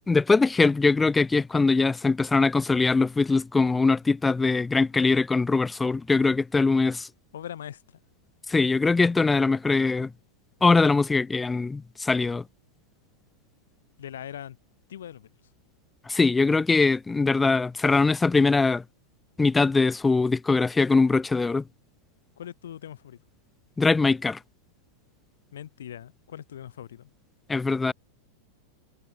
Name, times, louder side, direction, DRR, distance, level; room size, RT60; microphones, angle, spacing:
voice 1, 0.1-7.1 8.5-10.1 10.6-12.4 16.1-18.8 19.4-21.6 23.8-24.4 27.5-27.9, left 3 dB, 10° left, 1.6 m, -22 dB
voice 2, 7.3-8.0 14.0-14.6 14.9-15.3 22.4-23.2 25.5-27.1, left 10 dB, 65° left, 7.4 m, -40 dB
figure-of-eight pair, 90°, 0 cm